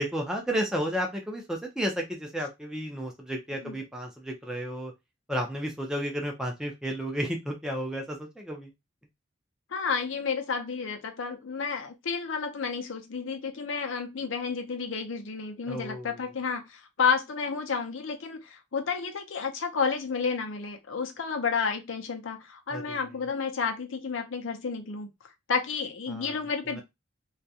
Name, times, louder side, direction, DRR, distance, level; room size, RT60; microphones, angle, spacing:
voice 1, 0.0-4.9 5.3-8.7 15.7-16.1 22.7-23.0 26.1-26.3 26.7-26.8, equal, 5° right, 0.5 m, -32 dB
voice 2, 9.7-25.1 25.5-26.8, left 5 dB, 70° left, 0.6 m, -31 dB
2.3 x 2.1 x 2.6 m
head